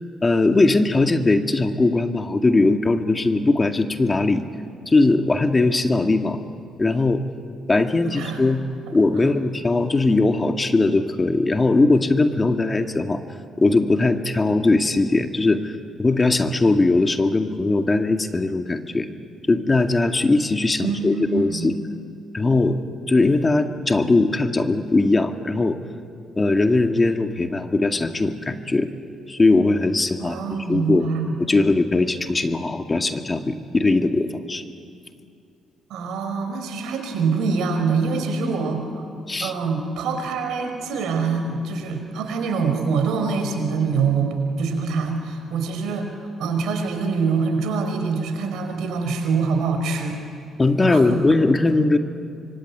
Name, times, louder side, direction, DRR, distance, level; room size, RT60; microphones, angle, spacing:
voice 1, 0.2-4.4 4.9-6.4 6.8-7.2 7.7-8.6 8.9-13.2 13.6-15.7 16.0-19.1 19.5-21.7 22.3-22.8 23.1-25.8 26.4-28.9 29.3-30.4 30.7-31.1 31.5-34.6 39.3-39.5 50.6-52.0, left 2 dB, 30° left, 6 dB, 2.1 m, -20 dB
voice 2, 8.0-8.4 8.9-9.0 20.8-21.7 30.2-31.4 35.9-39.1 39.4-50.2 50.9-51.4, right 5 dB, 70° right, 5 dB, 5.0 m, -25 dB
25.5 x 23.5 x 9.7 m, 2.4 s
hypercardioid pair, 50°, 0 cm